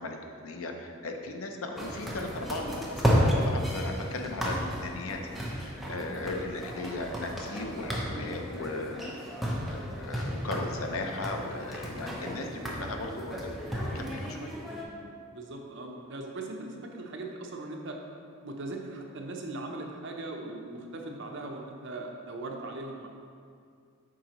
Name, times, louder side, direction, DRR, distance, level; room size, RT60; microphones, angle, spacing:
voice 1, 0.0-9.1 9.7-14.5, left 2 dB, 75° left, 3 dB, 0.6 m, -37 dB
sound 1, 1.8-14.8, equal, ahead, 0.7 m, -33 dB
voice 2, 15.3-18.0 18.4-23.1, right 2 dB, 60° right, 1 dB, 0.7 m, -39 dB
7.4 x 4.9 x 3.0 m, 2.2 s
head